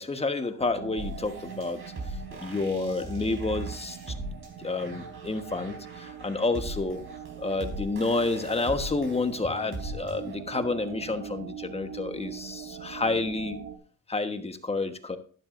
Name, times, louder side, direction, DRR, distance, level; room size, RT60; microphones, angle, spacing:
voice 1, 0.0-1.8 2.4-4.1 4.6-7.0 7.4-13.6 14.1-15.2, left 3 dB, 20° left, 8 dB, 1.2 m, -29 dB
sound 1, 0.6-13.8, right 8 dB, 70° right, 1.4 m, -42 dB
sound 2, 1.0-10.3, right 2 dB, 45° right, 4.1 m, -40 dB
12.0 x 11.0 x 2.5 m, 0.43 s
cardioid pair, 90°, 30 cm